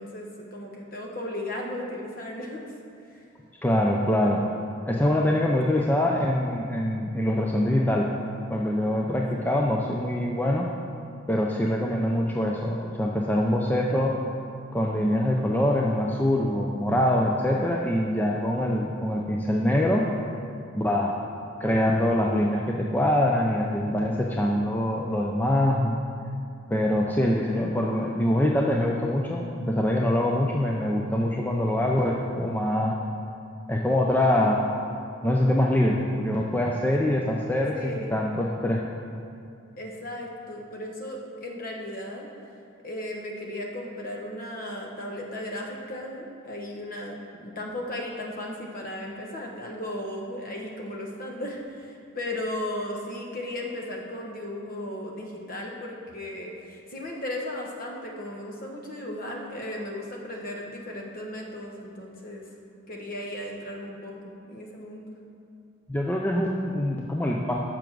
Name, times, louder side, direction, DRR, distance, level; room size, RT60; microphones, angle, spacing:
voice 1, 0.0-2.6 3.1-3.2 5.7-5.9 17.5-18.2 37.7-38.1 39.7-42.3 42.8-62.4 62.9-64.1 64.5-65.2, left 1 dB, 45° left, -1 dB, 1.1 m, -36 dB
voice 2, 3.6-4.4 4.9-8.1 8.5-10.7 11.3-14.1 14.7-20.1 20.7-21.2 21.6-26.0 26.7-33.0 33.7-34.6 35.2-38.8 65.9-67.6, left 1 dB, 10° left, -1 dB, 0.4 m, -24 dB
7.0 x 5.9 x 6.1 m, 2.4 s
head